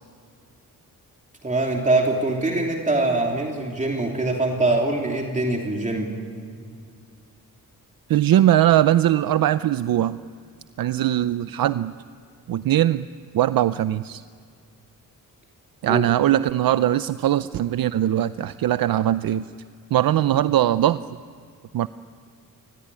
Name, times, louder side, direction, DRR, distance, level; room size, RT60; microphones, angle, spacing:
voice 1, 1.4-6.1 15.9-16.0, right 2 dB, 20° right, 0 dB, 3.1 m, -23 dB
voice 2, 8.1-10.2 10.8-11.9 12.5-13.1 13.3-14.2 15.8-19.5 19.9-21.0 21.7-21.9, right 12 dB, 80° right, 13 dB, 0.6 m, -20 dB
29.0 x 21.0 x 9.8 m, 2.3 s
wide cardioid pair, 130°, 34 cm